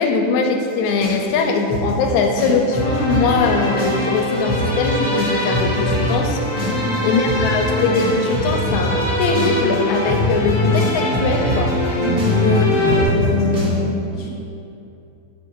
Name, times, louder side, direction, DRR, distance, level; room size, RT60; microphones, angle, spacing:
voice 1, 0.0-6.4 7.0-11.8 12.3-12.7 13.0-14.1, left 4 dB, 85° left, 3 dB, 1.9 m, -21 dB
sound 1, 1.0-3.3 3.6-4.2 4.5-4.6 5.2-13.8, left 1 dB, 35° right, 0.8 m, -22 dB
sound 2, 2.7-13.0, left 1 dB, 20° left, 0.7 m, -23 dB
voice 2, 6.7-7.1 12.0-12.5 14.1-14.3, left 1 dB, 75° right, -7 dB, 0.9 m, -27 dB
8.9 x 3.5 x 4.6 m, 2.7 s
omnidirectional pair, 3.4 m